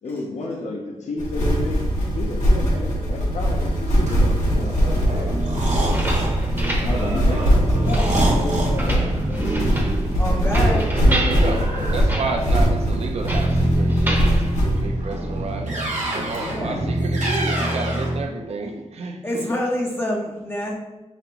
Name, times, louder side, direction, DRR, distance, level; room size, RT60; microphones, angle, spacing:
voice 1, 0.0-1.8 2.1-6.3 6.8-9.7 10.2-12.0, left 2 dB, 70° left, 0 dB, 0.6 m, -31 dB
sound 1, 1.2-14.8, equal, 85° left, 1.1 m, -21 dB
sound 2, 3.8-18.2, right 1 dB, 75° right, 1.0 m, -26 dB
sound 3, 5.8-15.4, right 1 dB, 15° right, 0.7 m, -29 dB
voice 2, 10.2-11.0 16.4-16.9 19.2-20.7, left 1 dB, 20° left, -2 dB, 0.5 m, -27 dB
voice 3, 11.3-19.4, right 3 dB, 60° right, 2 dB, 0.5 m, -31 dB
5.0 x 2.5 x 2.9 m, 1.1 s
wide cardioid pair, 80°, 12 cm